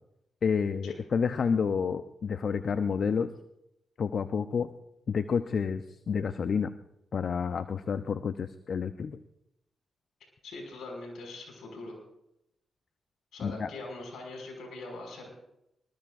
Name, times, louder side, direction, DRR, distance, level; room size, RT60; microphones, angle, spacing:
voice 1, 0.4-3.3 4.0-4.7 5.1-6.7 7.1-9.2 13.4-13.7, left 6 dB, 60° left, 11 dB, 0.7 m, -29 dB
voice 2, 10.4-12.0 13.3-15.3, left 2 dB, 75° left, 2 dB, 5.9 m, -42 dB
24.0 x 21.0 x 2.6 m, 0.85 s
supercardioid pair, 45°, 0 cm